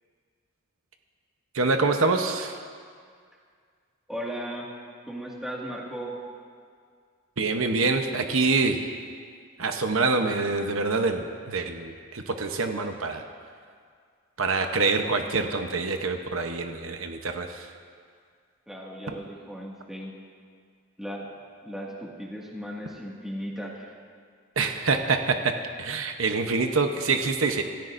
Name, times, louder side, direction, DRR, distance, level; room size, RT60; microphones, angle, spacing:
voice 1, 1.5-2.6 7.4-8.9 9.6-13.2 14.4-17.7 24.6-27.6, right 3 dB, 80° right, 5 dB, 0.9 m, -26 dB
voice 2, 4.1-4.7 5.1-6.1 18.7-20.1 21.0-21.3 21.6-23.9, equal, ahead, -4 dB, 1.9 m, -36 dB
27.0 x 14.0 x 2.6 m, 2.1 s
head